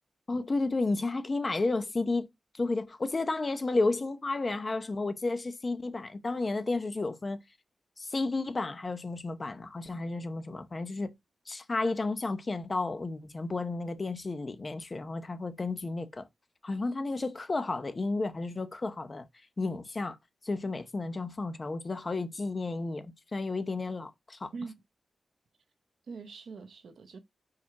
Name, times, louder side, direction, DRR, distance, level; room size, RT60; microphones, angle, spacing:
voice 1, 0.3-2.3 2.5-7.4 8.0-11.1 11.5-16.3 16.6-19.2 19.6-20.2 20.4-24.5, left 3 dB, 30° left, 0.7 m, -32 dB
voice 2, 26.1-27.2, right 4 dB, 65° right, 0.9 m, -43 dB
4.9 x 4.4 x 4.7 m
wide cardioid pair, 155°, 0 cm